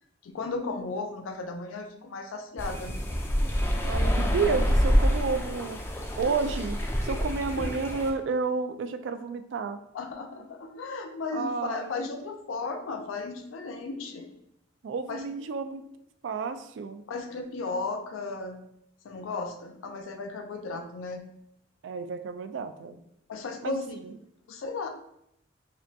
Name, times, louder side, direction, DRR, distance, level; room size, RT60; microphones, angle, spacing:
voice 1, 0.2-2.9 7.5-7.8 9.9-14.3 15.1-15.3 17.1-18.6 19.0-21.2 23.3-23.9 24.5-24.9, left 3 dB, 85° left, 5 dB, 0.4 m, -35 dB
sound 1, 2.6-8.1, equal, 10° left, 0.4 m, -27 dB
voice 2, 3.8-5.8 6.2-6.8 7.0-9.8 11.3-12.0 14.8-15.8 16.2-17.0 21.8-23.0 23.6-24.1, right 4 dB, 65° right, 9 dB, 0.3 m, -31 dB
5.0 x 2.2 x 2.7 m, 0.75 s
head